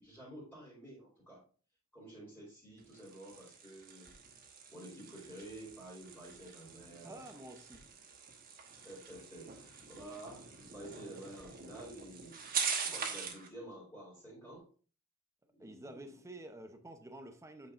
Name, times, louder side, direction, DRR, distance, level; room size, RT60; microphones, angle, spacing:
voice 1, 0.0-1.4 1.9-4.1 4.7-7.3 8.8-12.4 12.8-14.7 15.5-16.2, right 1 dB, 5° left, 3.0 m, -50 dB
sound 1, 2.8-13.5, right 6 dB, 45° right, 1.2 m, -43 dB
voice 2, 7.0-7.9 15.6-17.7, right 1 dB, 15° right, 0.7 m, -50 dB
8.5 x 5.2 x 2.5 m
head